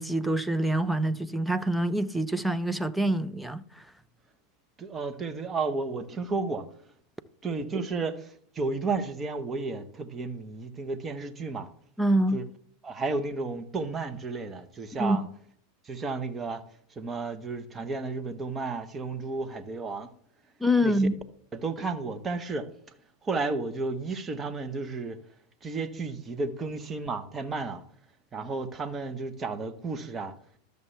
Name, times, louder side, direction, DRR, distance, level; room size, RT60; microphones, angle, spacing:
voice 1, 0.0-3.6 12.0-12.4 15.0-15.3 20.6-21.1, equal, ahead, 0.6 m, -25 dB
voice 2, 4.8-6.7 7.4-11.7 12.3-12.4 12.8-15.2 15.8-16.6 16.9-20.1 20.8-20.9 21.6-22.7 23.2-25.2 25.6-27.8 28.3-30.3, right 3 dB, 25° right, 1.1 m, -32 dB
12.5 x 6.7 x 3.4 m
figure-of-eight pair, 85°, 0 cm